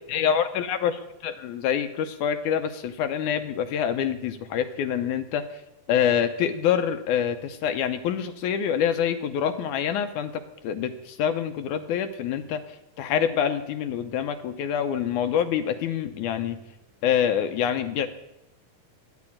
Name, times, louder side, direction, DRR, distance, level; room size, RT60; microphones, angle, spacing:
voice 1, 0.1-5.6 5.9-12.6 13.0-16.6 17.0-18.1, left 8 dB, 75° left, 9 dB, 2.0 m, -26 dB
10.5 x 10.5 x 8.6 m, 0.91 s
omnidirectional pair, 3.9 m